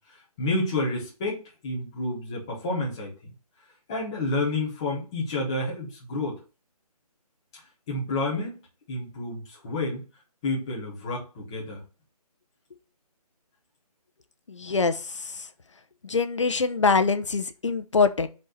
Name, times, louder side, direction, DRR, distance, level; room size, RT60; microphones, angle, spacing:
voice 1, 0.0-3.3 3.9-6.4 7.9-8.6 8.9-10.0 10.4-11.8, left 2 dB, 5° left, -4 dB, 0.9 m, -30 dB
voice 2, 14.5-15.0 16.0-18.3, left 4 dB, 50° left, 10 dB, 0.8 m, -23 dB
5.4 x 4.3 x 6.2 m, 0.34 s
hypercardioid pair, 180°, 20 cm